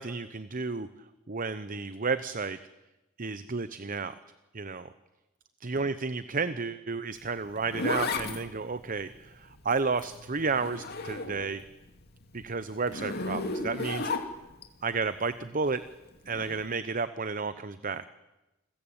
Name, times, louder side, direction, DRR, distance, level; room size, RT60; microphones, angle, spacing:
voice 1, 0.0-2.6 3.2-4.2 4.5-4.9 5.6-11.6 12.3-14.1 14.8-15.8 16.3-18.2, right 4 dB, 40° right, 13 dB, 0.9 m, -32 dB
Zipper (clothing), 7.2-11.6 12.0-14.7 16.3-16.6, left 3 dB, 50° left, 2.8 m, -35 dB
29.5 x 21.5 x 8.9 m, 1.0 s
head